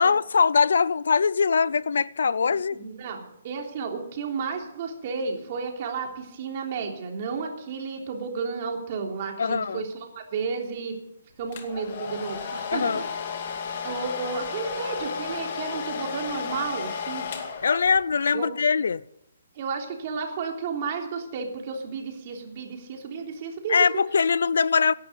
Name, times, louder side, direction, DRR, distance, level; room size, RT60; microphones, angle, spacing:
voice 1, 0.0-2.8 9.4-9.8 12.7-13.0 17.6-19.0 23.7-24.9, left 5 dB, 75° left, 0.5 m, -22 dB
voice 2, 2.5-11.0 11.4-13.0 13.8-17.2 18.3-18.5 19.6-23.8, right 5 dB, 40° right, 3.3 m, -32 dB
Domestic sounds home sounds, 11.5-18.2, left 6 dB, 45° left, 2.5 m, -33 dB
17.0 x 11.5 x 6.9 m
hypercardioid pair, 165°, 0 cm